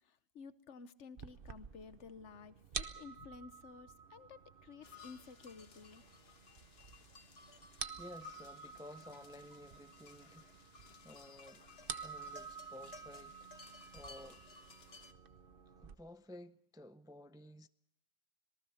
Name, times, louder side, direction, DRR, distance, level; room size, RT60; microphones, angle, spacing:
voice 1, 0.3-6.0, left 5 dB, 80° left, 1.3 m, -53 dB
sound 1, 1.2-15.9, right 6 dB, 50° right, 1.1 m, -50 dB
sound 2, 4.8-15.1, left 4 dB, 60° left, 1.6 m, -58 dB
voice 2, 7.6-10.5 11.0-13.5 13.9-14.4 15.8-17.7, left 1 dB, 5° right, 0.4 m, -54 dB
26.5 x 19.0 x 5.7 m
omnidirectional pair, 1.2 m